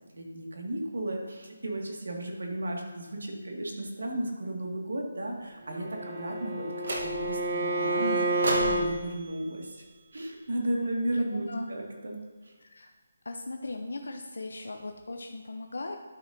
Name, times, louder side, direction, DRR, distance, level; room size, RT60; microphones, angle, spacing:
voice 1, 0.0-6.7 7.0-9.8 10.1-12.5, right 1 dB, 80° right, 0 dB, 1.9 m, -34 dB
Bowed string instrument, 5.7-8.9, right 1 dB, 25° right, 0.5 m, -29 dB
sound 1, 6.8-7.5 8.4-10.7, right 1 dB, 50° right, 1.1 m, -36 dB
voice 2, 11.3-11.7 12.6-12.9 13.2-16.0, left 2 dB, 65° left, 4 dB, 0.6 m, -38 dB
11.5 x 6.1 x 2.7 m, 1.3 s
hypercardioid pair, 180°, 0 cm